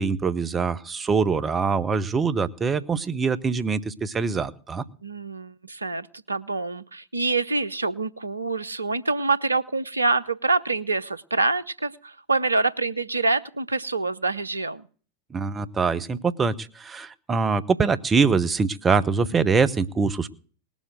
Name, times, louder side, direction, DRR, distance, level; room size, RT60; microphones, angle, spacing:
voice 1, 0.0-4.8 15.3-20.3, right 5 dB, 20° right, 13 dB, 1.0 m, -24 dB
voice 2, 5.0-14.9, right 3 dB, 80° right, 16 dB, 0.8 m, -26 dB
19.5 x 7.3 x 7.9 m, 0.42 s
figure-of-eight pair, 90°, 0 cm